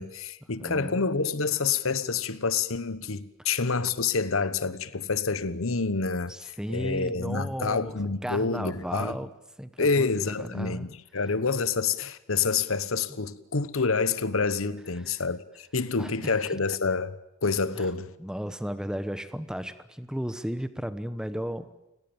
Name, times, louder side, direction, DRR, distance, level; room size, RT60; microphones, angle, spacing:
voice 1, 0.0-9.2 9.8-17.2 17.4-18.1, left 4 dB, 65° left, 1.1 m, -28 dB
voice 2, 0.6-1.0 6.3-8.0 8.2-9.3 9.6-10.1 10.4-10.9 15.0-15.1 16.0-16.6 17.7-17.9 18.2-21.7, equal, 5° right, 1.0 m, -34 dB
30.0 x 18.0 x 8.9 m
head